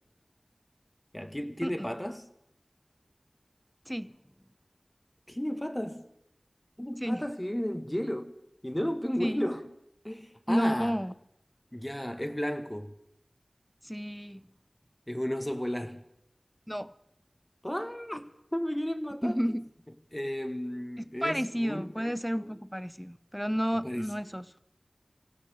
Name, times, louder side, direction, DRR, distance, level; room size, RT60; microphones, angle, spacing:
voice 1, 1.1-2.3 5.3-6.0 6.8-8.3 8.6-9.7 10.0-11.0 11.7-12.9 15.1-16.0 17.6-19.4 20.1-21.9 23.8-24.1, equal, 15° left, 1.2 m, -33 dB
voice 2, 10.5-11.1 13.9-14.4 16.7-16.9 19.2-19.7 21.0-24.5, equal, ahead, 0.6 m, -31 dB
25.0 x 16.0 x 3.4 m
wide cardioid pair, 50°, 0 cm